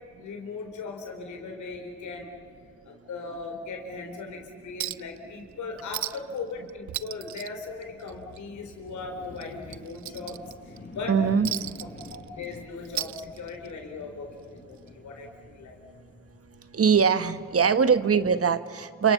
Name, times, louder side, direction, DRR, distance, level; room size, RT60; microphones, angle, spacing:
voice 1, 0.2-2.3 2.8-10.4 10.6-11.2 11.8-15.3 15.5-15.8, left 4 dB, 85° left, 3 dB, 4.3 m, -38 dB
Chink clink, 4.8-5.2 5.5-5.6 5.9-6.4 6.7-8.4 8.7-8.9 9.4-10.8 11.5-12.6 12.9-13.8 14.9-15.0, right 13 dB, 75° right, 0.5 m, -35 dB
sound 1, 7.7-18.1, left 3 dB, 40° left, 4.5 m, -48 dB
voice 2, 11.1-11.5 16.7-19.1, right 6 dB, 55° right, 11 dB, 1.3 m, -22 dB
29.0 x 27.0 x 5.8 m, 2.1 s
cardioid pair, 55°, 29 cm